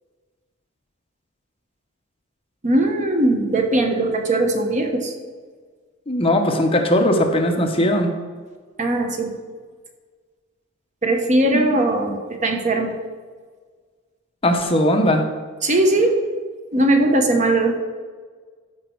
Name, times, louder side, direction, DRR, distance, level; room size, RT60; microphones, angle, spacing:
voice 1, 2.6-5.1 8.8-9.3 11.0-12.9 15.6-16.2 16.7-17.7, right 1 dB, 35° right, 4 dB, 1.1 m, -19 dB
voice 2, 6.1-8.1 11.5-11.6 14.4-15.2, left 1 dB, 30° left, 4 dB, 0.8 m, -18 dB
13.5 x 5.2 x 4.5 m, 1.5 s
head